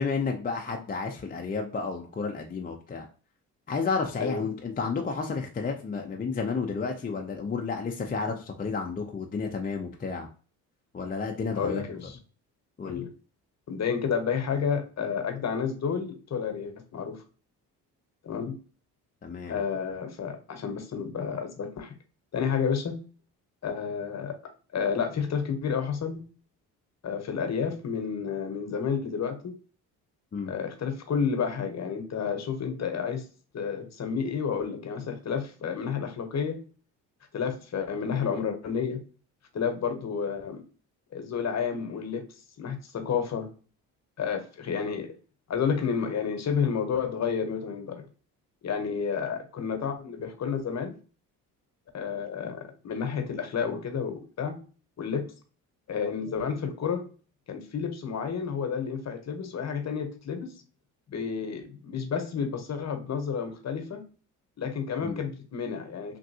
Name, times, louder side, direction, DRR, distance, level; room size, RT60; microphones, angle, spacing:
voice 1, 0.0-3.1 3.7-10.3 10.9-11.8 12.8-13.0 19.2-19.6 30.3-30.5 65.0-65.2, left 4 dB, 20° left, 2 dB, 0.5 m, -31 dB
voice 2, 11.5-12.2 12.8-13.1 13.7-17.2 18.2-18.6 19.5-21.9 22.3-23.0 23.6-24.4 24.7-26.3 27.0-29.6 30.5-33.3 33.5-36.6 37.3-39.0 39.5-40.6 41.1-42.3 42.6-43.5 44.2-45.2 45.5-48.1 48.6-51.0 51.9-54.6 55.0-55.3 55.9-57.1 57.5-60.6 61.1-64.0 64.6-66.2, left 6 dB, 40° left, 6 dB, 0.9 m, -30 dB
3.2 x 2.6 x 2.7 m, 0.38 s
supercardioid pair, 65°, 40 cm